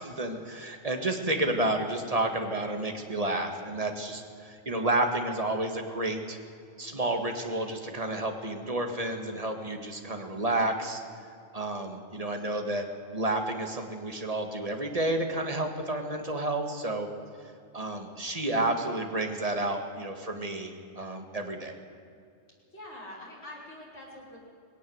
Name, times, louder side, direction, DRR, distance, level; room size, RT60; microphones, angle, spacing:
voice 1, 0.0-6.4 6.8-11.0 11.5-12.9 13.1-17.1 17.7-21.8, right 2 dB, 35° right, 4 dB, 2.0 m, -30 dB
voice 2, 22.7-24.4, left 1 dB, 75° left, -5 dB, 5.9 m, -44 dB
20.0 x 17.5 x 8.0 m, 2.4 s
omnidirectional pair, 1.1 m